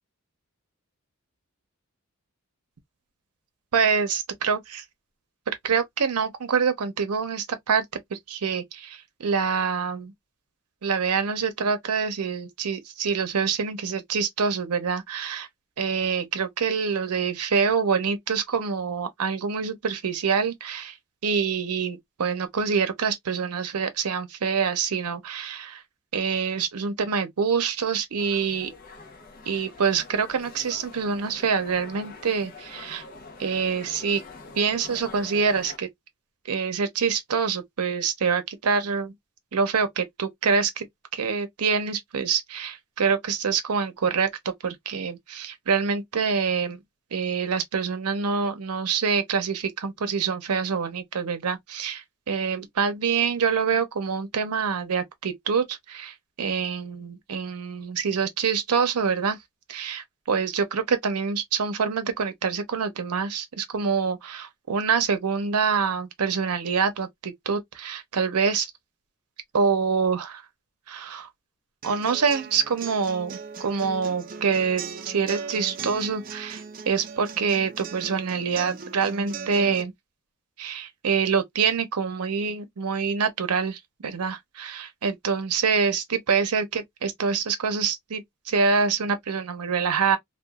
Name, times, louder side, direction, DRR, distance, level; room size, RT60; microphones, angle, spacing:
voice 1, 3.7-4.8 5.5-7.9 8.1-10.1 10.8-15.5 15.8-21.0 21.2-25.8 26.1-28.7 29.5-33.0 33.4-34.2 34.6-35.9 36.4-39.1 39.5-40.9 41.1-46.8 47.1-59.4 59.7-68.7 69.5-70.4 70.9-71.3 71.8-79.9 80.6-90.2, right 6 dB, 90° right, 0.6 m, -26 dB
sound 1, 28.2-35.8, left 4 dB, 40° left, 0.6 m, -45 dB
sound 2, 71.8-79.8, right 5 dB, 40° right, 0.4 m, -38 dB
2.9 x 2.2 x 2.2 m
head